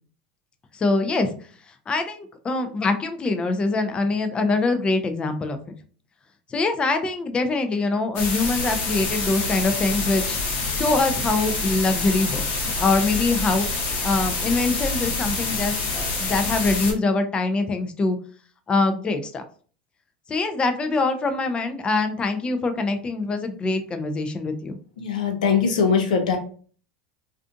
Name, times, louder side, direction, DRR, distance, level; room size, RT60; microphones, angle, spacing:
voice 1, 0.7-1.4 1.9-5.6 6.5-10.4 10.7-13.7 14.0-18.2 18.7-19.5 20.3-24.8, left 3 dB, 25° left, 8 dB, 0.4 m, -24 dB
sound 1, 8.2-16.9, left 3 dB, 60° left, 0.9 m, -26 dB
voice 2, 25.0-26.4, left 6 dB, 85° left, 5 dB, 0.6 m, -21 dB
2.5 x 2.4 x 2.4 m, 0.43 s
hypercardioid pair, 95°, 4 cm